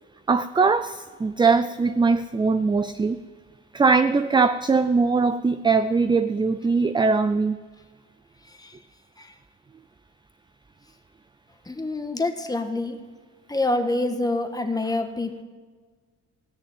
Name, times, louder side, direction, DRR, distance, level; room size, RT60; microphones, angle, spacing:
voice 1, 0.3-3.2 3.7-7.6, right 4 dB, 15° right, 11 dB, 0.4 m, -21 dB
voice 2, 11.6-13.0 13.5-15.4, left 2 dB, 10° left, 6 dB, 1.5 m, -27 dB
16.5 x 6.6 x 9.3 m, 1.5 s
cardioid pair, 90°, 30 cm